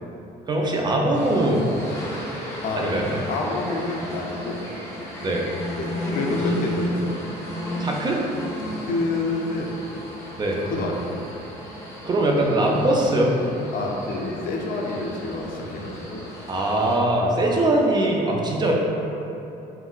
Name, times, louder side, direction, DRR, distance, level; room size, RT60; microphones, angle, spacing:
voice 1, 0.5-1.7 2.7-3.1 5.2-5.5 6.3-6.8 7.8-8.2 10.4-10.6 12.0-13.3 16.5-18.7, right 1 dB, 25° right, -1 dB, 0.4 m, -22 dB
sound 1, 1.1-17.0, equal, 15° left, 0.7 m, -33 dB
voice 2, 2.6-2.9 3.3-4.6 5.8-7.1 8.6-9.7 10.6-11.2 11.6-11.7 13.7-16.2, left 3 dB, 60° left, -1 dB, 0.5 m, -28 dB
3.8 x 2.1 x 2.3 m, 2.8 s
cardioid pair, 110°, 17 cm